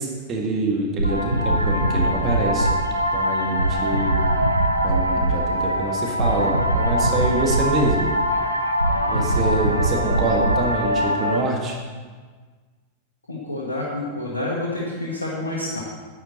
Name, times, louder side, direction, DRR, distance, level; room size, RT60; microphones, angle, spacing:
voice 1, 0.0-2.7 3.1-4.2 4.8-8.2 9.1-11.8, right 2 dB, 30° right, 0 dB, 1.8 m, -25 dB
sound 1, 1.0-11.4, right 1 dB, 90° right, 0.8 m, -22 dB
voice 2, 8.9-9.4 13.3-15.8, left 1 dB, 80° left, -4 dB, 1.5 m, -29 dB
10.5 x 8.7 x 4.1 m, 1.5 s
figure-of-eight pair, 90°, 0 cm